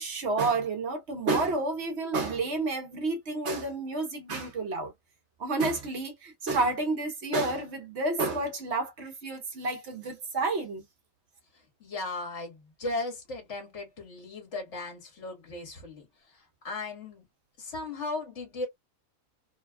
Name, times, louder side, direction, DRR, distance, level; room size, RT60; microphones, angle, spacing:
voice 1, 0.0-4.9 5.4-10.8, right 3 dB, 60° right, 1.1 m, -30 dB
voice 2, 11.8-16.1 16.3-17.2 17.6-18.7, left 2 dB, 60° left, 1.7 m, -36 dB
3.3 x 2.2 x 2.2 m
omnidirectional pair, 1.4 m